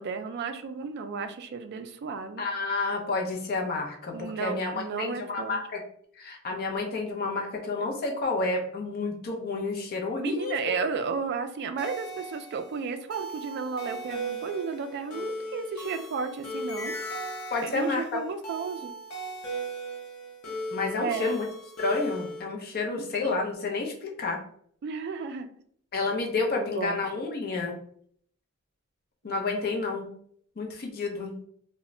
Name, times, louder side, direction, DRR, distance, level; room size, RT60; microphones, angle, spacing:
voice 1, 0.0-2.4 4.1-5.6 10.2-17.0 17.6-18.9 21.0-21.4 22.9-23.4 24.8-25.5 26.5-27.0, right 5 dB, 50° right, 8 dB, 0.3 m, -33 dB
voice 2, 2.4-5.8 6.2-10.7 17.5-18.2 20.7-21.5 21.8-24.4 25.9-27.7 29.2-30.1 30.6-31.3, left 3 dB, 45° left, 1 dB, 0.5 m, -30 dB
sound 1, 11.8-22.4, right 1 dB, 80° left, 0.7 m, -37 dB
2.1 x 2.0 x 3.6 m, 0.63 s
head